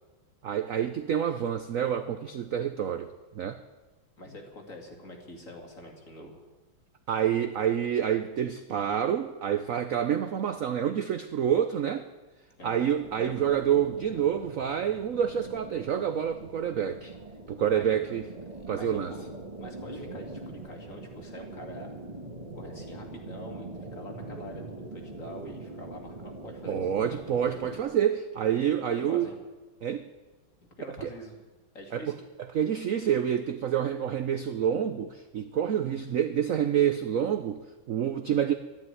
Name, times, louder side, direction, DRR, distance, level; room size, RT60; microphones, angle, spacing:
voice 1, 0.4-3.1 3.3-3.6 7.1-12.1 12.6-17.1 17.5-18.3 18.7-19.1 26.7-29.3 29.8-30.1 31.0-31.1 31.9-32.0 32.5-38.5, right 9 dB, 65° right, 9 dB, 0.8 m, -28 dB
voice 2, 4.2-6.4 12.6-12.9 17.7-18.0 18.7-19.3 19.6-22.0 22.5-26.8 28.9-29.3 30.8-31.4 31.7-32.2, left 1 dB, 40° left, 3 dB, 2.6 m, -45 dB
sound 1, 13.0-27.8, right 2 dB, 20° right, 1.4 m, -43 dB
12.5 x 11.0 x 9.6 m, 1.2 s
omnidirectional pair, 2.2 m